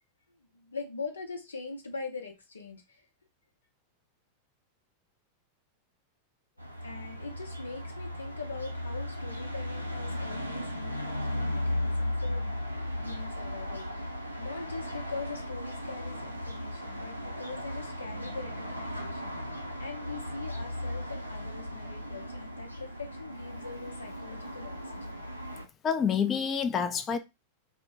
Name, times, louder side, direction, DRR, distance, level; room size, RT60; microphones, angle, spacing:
voice 1, 0.4-3.1 6.8-12.6 13.0-25.2, left 4 dB, 75° left, 0.7 m, -42 dB
sound 1, 6.6-25.7, left 1 dB, 90° right, 0.4 m, -36 dB
voice 2, 25.8-27.2, left 7 dB, 25° left, 0.4 m, -27 dB
2.1 x 2.1 x 3.8 m
figure-of-eight pair, 90°, 0 cm